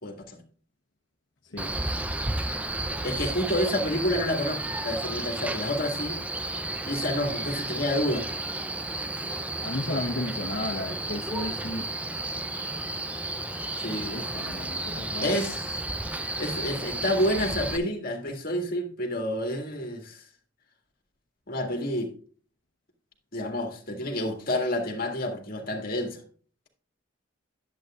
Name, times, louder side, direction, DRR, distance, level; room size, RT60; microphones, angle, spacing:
voice 1, 0.0-0.4 3.0-6.2 6.9-8.3 13.8-14.2 15.2-15.8 16.4-20.2 21.5-22.1 23.3-26.2, left 1 dB, 50° left, 2.0 m, -29 dB
voice 2, 1.4-1.7 9.6-11.9 14.1-15.3, left 1 dB, 75° left, 1.1 m, -33 dB
Male speech man speaking, 1.6-17.8, right 2 dB, 10° right, 0.5 m, -32 dB
11.0 x 8.3 x 2.4 m
head